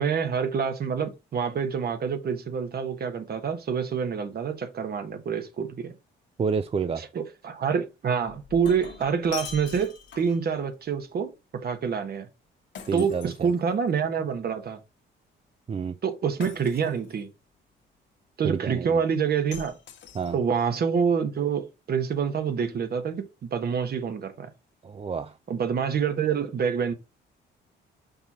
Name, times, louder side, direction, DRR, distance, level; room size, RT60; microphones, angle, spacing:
voice 1, 0.0-5.9 7.0-12.3 12.9-14.8 16.0-17.3 18.4-19.7 20.3-23.2 23.5-24.5 25.5-26.9, right 6 dB, 50° right, 1.3 m, -27 dB
voice 2, 6.4-7.0 12.9-13.5 15.7-15.9 18.4-19.0 20.1-20.4 24.8-25.3, right 6 dB, 30° right, 0.5 m, -29 dB
Shatter, 8.4-10.5 12.8-14.0 16.4-17.2 19.5-20.6, left 7 dB, 65° left, 1.4 m, -42 dB
5.4 x 4.3 x 4.0 m
cardioid pair, 90°, 20 cm